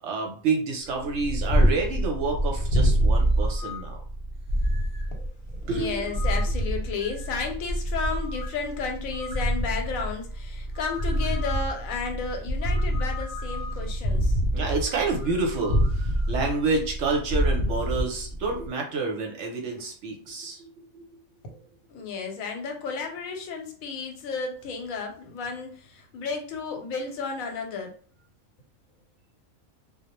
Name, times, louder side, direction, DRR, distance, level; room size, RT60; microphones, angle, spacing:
voice 1, 0.0-4.0 5.7-6.1 14.5-21.0, right 3 dB, 65° right, 2 dB, 0.8 m, -29 dB
Purr, 1.0-18.7, equal, 60° left, 0.7 m, -26 dB
sound 1, 3.3-3.9 4.6-5.1 6.0-6.6 7.0-7.5 8.0-8.6 9.1-9.5 10.7-11.7 12.6-13.9 14.8-16.7, left 5 dB, 5° right, 0.5 m, -43 dB
voice 2, 5.6-14.4 21.9-27.9, left 4 dB, 80° left, 3 dB, 1.0 m, -33 dB
2.2 x 2.0 x 2.9 m, 0.43 s
omnidirectional pair, 1.4 m